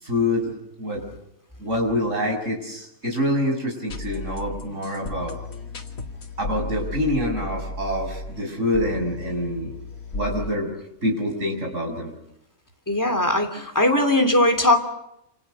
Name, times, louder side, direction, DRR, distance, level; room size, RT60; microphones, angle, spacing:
voice 1, 0.0-0.5 0.8-1.1 1.6-5.4 6.4-9.7 10.1-10.7 11.0-12.1 13.9-14.0, left 1 dB, 65° right, 1 dB, 6.9 m, -26 dB
sound 1, 3.9-10.5, left 2 dB, 85° left, 2.6 m, -34 dB
voice 2, 12.9-14.8, left 1 dB, 15° left, 4 dB, 2.9 m, -19 dB
28.0 x 27.0 x 6.7 m, 0.82 s
omnidirectional pair, 1.4 m